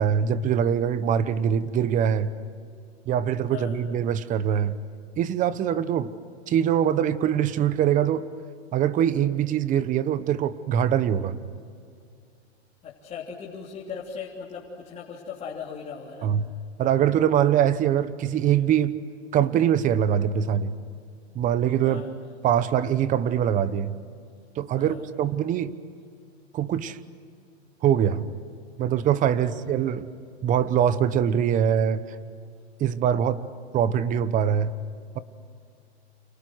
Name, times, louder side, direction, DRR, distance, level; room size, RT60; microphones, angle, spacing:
voice 1, 0.0-2.3 3.1-4.8 5.2-6.1 6.5-8.2 8.7-11.4 16.2-16.5 16.8-19.0 19.3-20.8 21.3-22.0 22.4-23.9 24.6-25.7 26.5-27.0 27.8-28.3 28.8-30.0 30.4-32.0 32.8-33.5 33.7-34.7, right 9 dB, 25° right, 15 dB, 1.0 m, -23 dB
voice 2, 12.8-16.3 21.8-22.1 24.8-25.0 29.3-29.6, left 6 dB, 20° left, -4 dB, 3.3 m, -38 dB
30.0 x 28.5 x 6.4 m, 2.3 s
hypercardioid pair, 140°, 33 cm